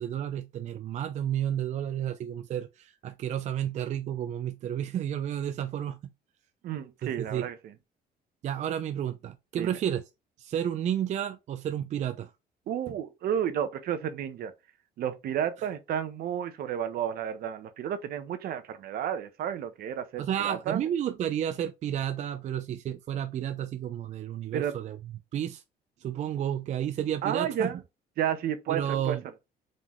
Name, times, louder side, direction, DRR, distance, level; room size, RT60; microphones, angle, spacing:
voice 1, 0.0-6.0 7.0-7.5 8.4-10.0 10.4-12.3 20.2-25.0 25.3-25.6 26.0-27.7 28.7-29.2, right 10 dB, 45° right, 0.4 m, -31 dB
voice 2, 6.6-7.7 9.6-9.8 12.7-14.5 15.0-20.8 24.5-24.7 27.2-27.8 28.2-29.2, right 9 dB, 65° right, 0.7 m, -31 dB
3.8 x 3.6 x 3.0 m
cardioid pair, 110°, 17 cm